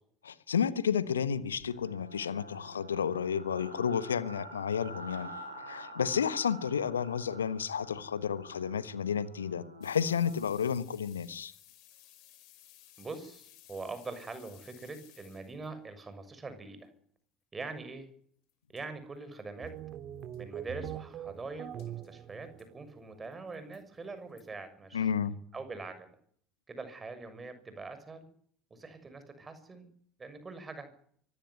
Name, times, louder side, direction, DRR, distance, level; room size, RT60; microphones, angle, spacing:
voice 1, 0.2-5.3 5.7-11.5 24.9-25.4, left 7 dB, 80° left, 1.2 m, -31 dB
sound 1, 1.6-10.5, right 1 dB, 90° right, 6.5 m, -48 dB
sound 2, 9.8-15.7 18.5-18.6 18.8-18.9 19.4-19.5 19.7-19.8 20.2-20.4 21.8-22.1 22.6-22.7 23.3-23.8 24.4-24.5, left 13 dB, 55° left, 5.1 m, -58 dB
voice 2, 13.0-16.9 17.5-18.1 18.7-19.8 20.4-25.1 25.5-26.1 26.7-28.3 28.7-29.9 30.2-30.9, right 3 dB, 20° right, 6.6 m, -43 dB
sound 3, 19.6-23.2, right 10 dB, 45° right, 2.3 m, -43 dB
24.5 x 16.0 x 9.8 m
figure-of-eight pair, 65°, 0 cm